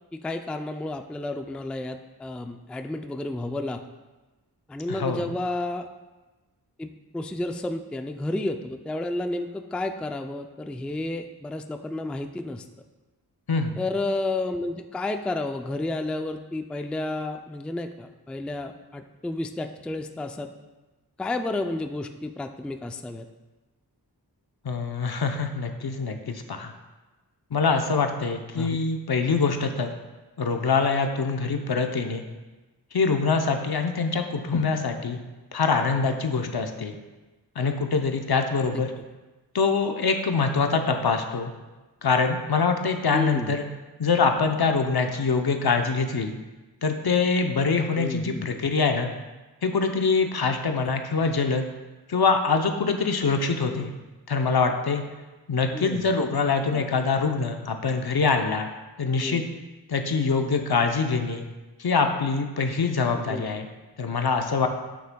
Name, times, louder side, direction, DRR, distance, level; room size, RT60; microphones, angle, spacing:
voice 1, 0.1-3.8 4.7-5.9 6.8-12.7 13.8-20.5 21.2-23.3 28.6-28.8 38.6-38.8 43.1-43.6 48.0-48.4 53.6-53.9 55.7-56.1 56.7-56.8 59.2-59.5 63.3-63.4, left 2 dB, 5° left, 6 dB, 0.3 m, -31 dB
voice 2, 4.9-5.3 13.5-13.8 24.6-26.7 27.5-29.9 30.4-32.2 32.9-35.2 35.5-36.9 37.6-38.9 39.5-41.5 42.0-43.6 44.0-46.3 46.8-49.1 49.6-51.6 52.1-53.9 54.3-55.0 55.5-58.7 59.0-59.4 59.9-61.4 61.8-63.7 64.0-64.7, left 4 dB, 65° left, 5 dB, 0.7 m, -24 dB
8.4 x 7.8 x 2.3 m, 1.2 s
wide cardioid pair, 55°, 40 cm